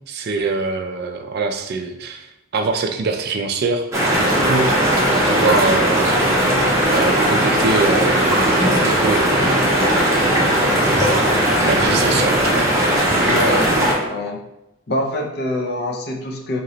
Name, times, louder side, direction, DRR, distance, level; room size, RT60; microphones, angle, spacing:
voice 1, 0.1-3.9 4.5-4.8 5.3-6.3 6.9-8.5 8.8-9.7 10.6-11.0 11.6-12.7 13.4-13.6, right 3 dB, 50° right, 5 dB, 0.3 m, -24 dB
sound 1, 3.9-13.9, right 1 dB, 15° right, 0.8 m, -17 dB
voice 2, 13.3-13.7 14.1-14.5 14.9-16.6, left 1 dB, 50° left, 2 dB, 0.5 m, -25 dB
3.0 x 2.9 x 3.9 m, 0.92 s
head